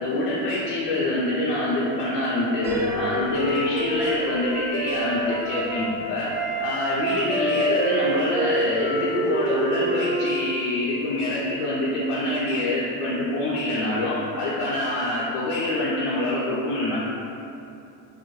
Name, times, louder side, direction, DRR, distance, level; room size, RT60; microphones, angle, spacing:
voice 1, 0.0-6.3 6.6-17.0, left 1 dB, 85° left, -8 dB, 0.6 m, -25 dB
Wind instrument woodwind instrument, 2.3-5.9 6.3-10.4, right 2 dB, 45° right, 0.6 m, -27 dB
Piano, 2.6-6.4, left 1 dB, 5° right, 0.9 m, -34 dB
2.6 x 2.0 x 3.0 m, 2.7 s
cardioid pair, 175°, 47 cm